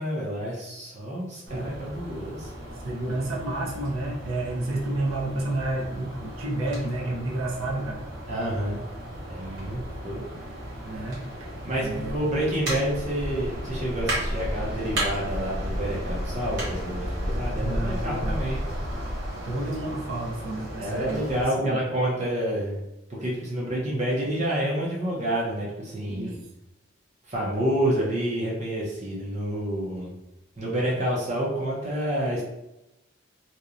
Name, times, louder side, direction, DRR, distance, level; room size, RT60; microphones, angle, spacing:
voice 1, 0.0-2.5 8.3-8.8 9.3-10.2 11.6-18.6 20.8-22.8 23.1-26.4 27.3-30.2 30.6-32.4, right 1 dB, 35° right, -4 dB, 0.5 m, -28 dB
sound 1, 1.5-21.4, equal, 65° right, 1.2 m, -34 dB
voice 2, 2.8-8.0 9.4-9.6 10.8-11.5 11.8-12.2 17.6-18.4 19.4-21.8 26.1-26.4, right 2 dB, 90° right, -3 dB, 0.6 m, -30 dB
2.7 x 2.0 x 2.4 m, 0.92 s
head